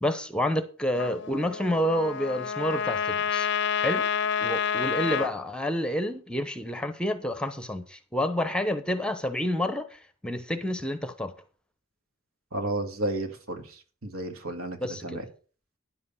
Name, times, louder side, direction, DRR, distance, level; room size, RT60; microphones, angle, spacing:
voice 1, 0.0-3.5 3.8-4.1 4.4-11.3 14.8-15.2, equal, 5° left, 0.8 m, -29 dB
Trumpet, 0.9-5.3, left 7 dB, 50° left, 0.5 m, -29 dB
voice 2, 12.5-13.6 14.0-14.8 15.0-15.2, right 1 dB, 80° right, 1.9 m, -31 dB
10.5 x 7.7 x 5.5 m
head